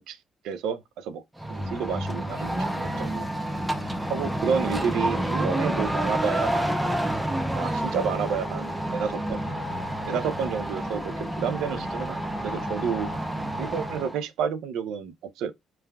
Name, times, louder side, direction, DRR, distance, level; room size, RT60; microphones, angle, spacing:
voice 1, 0.4-1.2 1.5-3.3 4.1-6.7 7.5-9.4 10.0-13.1 13.6-15.5, right 7 dB, 90° right, 0.3 m, -30 dB
sound 1, 1.4-14.2, right 1 dB, 5° right, 0.3 m, -29 dB
sound 2, 1.6-14.0, left 5 dB, 85° left, 0.6 m, -43 dB
3.1 x 2.2 x 2.2 m
cardioid pair, 170°, 0 cm